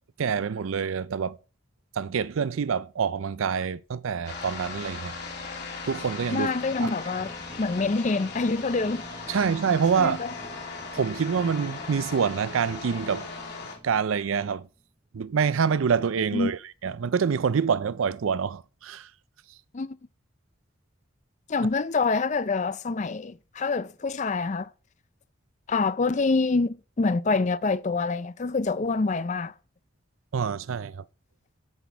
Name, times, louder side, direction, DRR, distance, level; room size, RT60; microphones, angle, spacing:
voice 1, 0.2-1.4 2.0-5.1 5.8-6.5 6.8-6.9 9.3-10.2 10.9-13.3 13.8-14.7 15.1-19.1 30.3-31.0, right 6 dB, 85° right, 0.5 m, -26 dB
sound 1, 4.2-13.8, left 4 dB, 55° left, 3.2 m, -38 dB
voice 2, 6.3-7.3 7.6-9.4 10.0-10.3 16.3-16.5 19.7-20.0 21.5-24.7 25.7-29.5, left 3 dB, 35° left, 0.4 m, -26 dB
sound 2, 6.3-15.1, equal, 15° right, 1.1 m, -49 dB
15.5 x 6.0 x 4.5 m
head